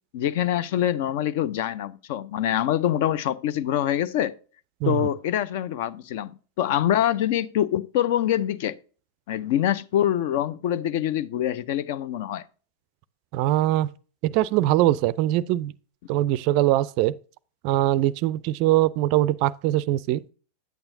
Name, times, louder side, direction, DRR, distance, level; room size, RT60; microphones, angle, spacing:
voice 1, 0.1-4.4 4.8-8.8 9.3-12.4, left 11 dB, 50° left, 0.5 m, -25 dB
voice 2, 13.3-13.9 14.2-15.7 16.1-17.1 17.6-20.3, right 15 dB, 45° right, 0.4 m, -22 dB
9.2 x 8.7 x 2.6 m
figure-of-eight pair, 90°, 0 cm